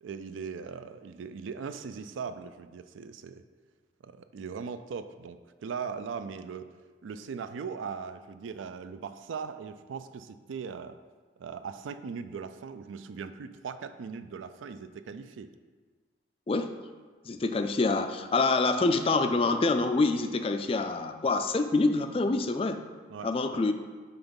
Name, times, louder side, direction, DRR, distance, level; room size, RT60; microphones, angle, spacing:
voice 1, 0.0-3.4 4.0-6.7 7.0-11.0 11.4-15.5 23.1-23.6, right 6 dB, 80° right, 11 dB, 0.4 m, -39 dB
voice 2, 17.3-22.8 23.2-23.7, left 3 dB, 30° left, 8 dB, 0.3 m, -26 dB
5.8 x 4.0 x 5.3 m, 1.5 s
head